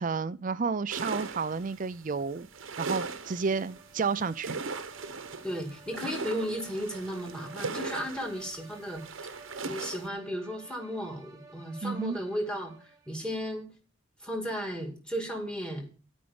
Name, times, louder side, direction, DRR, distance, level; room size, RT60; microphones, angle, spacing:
voice 1, 0.0-2.5 2.8-4.6 11.8-12.2, right 5 dB, 40° right, 0.4 m, -31 dB
sound 1, 0.9-10.1, right 4 dB, 70° right, 0.9 m, -39 dB
sound 2, 2.4-13.4, right 3 dB, 15° right, 1.5 m, -54 dB
voice 2, 5.4-9.0 9.6-13.7 14.2-15.9, equal, 5° left, 2.2 m, -35 dB
12.0 x 5.3 x 7.0 m
head